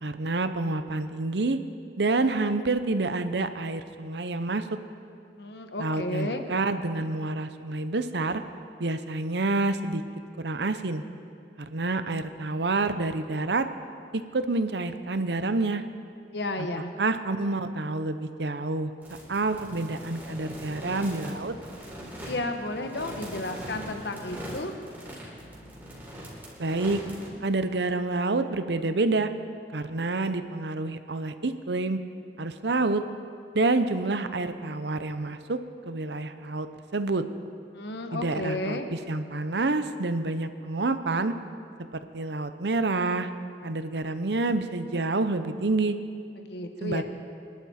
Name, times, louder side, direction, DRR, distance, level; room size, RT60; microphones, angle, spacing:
voice 1, 0.0-1.6 2.0-4.7 5.8-8.4 8.8-10.0 10.4-11.0 11.6-13.7 14.1-15.8 16.6-16.7 17.0-18.9 19.3-21.5 26.6-27.0 27.4-29.3 29.7-32.0 32.4-33.0 33.5-35.6 35.9-36.7 36.9-37.2 38.1-38.8 39.1-41.3 42.1-43.3 43.6-46.0 46.8-47.0, right 3 dB, 70° right, 10 dB, 0.8 m, -28 dB
voice 2, 5.4-6.4 16.3-16.9 22.3-24.8 37.7-38.9 46.4-47.0, left 1 dB, 70° left, 6 dB, 1.2 m, -32 dB
sound 1, 19.0-27.3, equal, 10° right, 4.2 m, -41 dB
25.0 x 12.0 x 4.4 m, 2.4 s
head